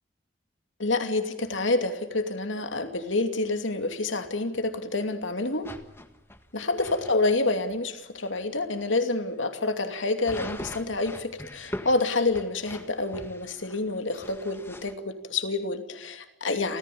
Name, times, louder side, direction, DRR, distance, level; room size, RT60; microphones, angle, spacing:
voice 1, 0.8-5.7 6.5-16.8, left 2 dB, 85° left, 7 dB, 2.6 m, -28 dB
sound 1, 5.6-7.2 7.7-7.8 8.2-8.4 8.7-8.9 10.2-14.9, left 1 dB, 10° left, 1.6 m, -41 dB
30.0 x 14.5 x 8.6 m, 0.98 s
head